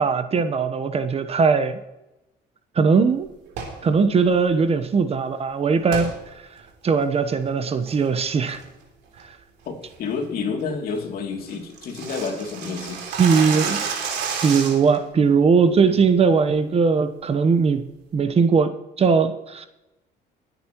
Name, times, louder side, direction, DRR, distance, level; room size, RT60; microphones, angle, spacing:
voice 1, 0.0-1.8 2.8-3.3 3.8-6.1 6.8-8.6 13.2-13.9 14.4-17.8 18.1-19.7, right 5 dB, 35° right, 1.0 m, -19 dB
sound 1, 3.5-3.8 5.9-6.1 6.6-6.7 7.2-7.5 7.9-8.2 8.5-8.8 9.2-9.3 9.7-9.9 10.3-10.4 10.7-10.8 11.0-11.1 11.3-15.0, right 6 dB, 85° right, 3.3 m, -30 dB
voice 2, 9.7-13.0 15.6-16.0, left 5 dB, 65° left, 2.8 m, -30 dB
21.5 x 9.4 x 3.0 m
cardioid pair, 110°, 17 cm